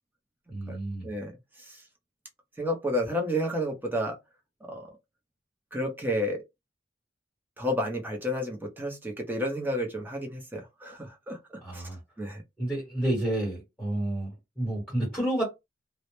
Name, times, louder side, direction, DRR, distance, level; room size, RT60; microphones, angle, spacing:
voice 1, 0.5-1.1 11.6-12.0 12.6-15.4, right 1 dB, 5° left, 1.0 m, -30 dB
voice 2, 2.6-4.2 4.7-4.9 5.7-6.4 7.6-11.4 11.7-11.8 12.2-12.4, equal, 10° right, 0.5 m, -31 dB
2.0 x 2.0 x 2.9 m
head